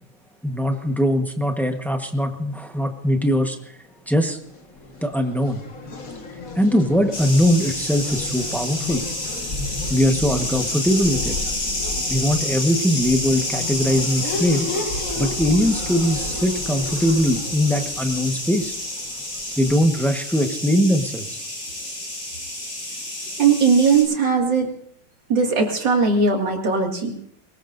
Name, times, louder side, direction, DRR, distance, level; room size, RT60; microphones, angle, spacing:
voice 1, 0.4-3.6 4.1-4.4 5.0-5.6 6.5-9.0 9.9-11.4 12.1-14.7 15.1-18.8 19.6-21.4, equal, ahead, 4 dB, 0.7 m, -21 dB
Race car auto racing / Accelerating revving vroom, 4.4-20.0, left 3 dB, 45° left, 1.9 m, -33 dB
sound 1, 7.1-24.0, left 1 dB, 60° left, 7.0 m, -29 dB
voice 2, 23.4-24.7 25.3-27.1, right 5 dB, 60° right, 1 dB, 2.9 m, -19 dB
22.5 x 20.0 x 2.6 m, 0.67 s
omnidirectional pair, 2.3 m